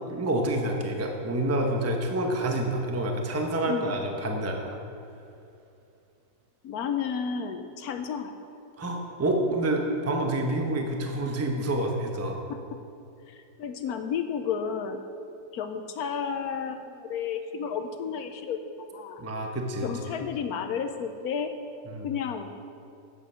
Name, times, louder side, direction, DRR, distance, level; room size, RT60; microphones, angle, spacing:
voice 1, 0.1-4.8 8.8-12.4 19.2-19.9 21.9-22.1, right 1 dB, 15° right, 2 dB, 0.5 m, -28 dB
voice 2, 6.6-8.3 12.5-12.6 13.3-15.0 15.5-19.2 19.8-21.5 22.0-22.5, left 7 dB, 70° left, 7 dB, 1.0 m, -32 dB
9.0 x 7.9 x 6.2 m, 2.7 s
omnidirectional pair, 1.9 m